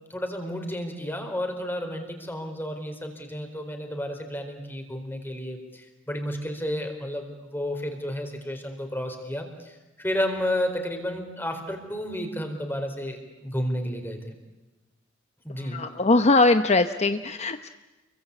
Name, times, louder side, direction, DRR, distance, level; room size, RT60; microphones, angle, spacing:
voice 1, 0.1-14.4 15.4-15.8, equal, 10° left, 5 dB, 4.3 m, -32 dB
voice 2, 15.7-17.7, left 2 dB, 35° left, 9 dB, 0.8 m, -21 dB
29.5 x 23.0 x 8.5 m, 1.1 s
head